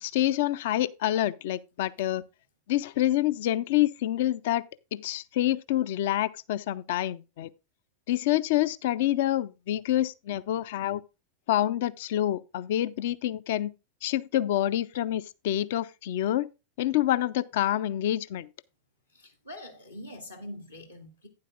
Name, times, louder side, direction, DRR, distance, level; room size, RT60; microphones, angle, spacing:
voice 1, 0.0-2.2 2.7-4.6 4.9-7.5 8.1-11.0 11.5-13.7 14.0-16.5 16.8-18.5, left 13 dB, 55° left, 0.4 m, -27 dB
voice 2, 19.1-21.3, left 1 dB, 80° left, 2.1 m, -44 dB
11.5 x 9.6 x 2.4 m
figure-of-eight pair, 90°, 0 cm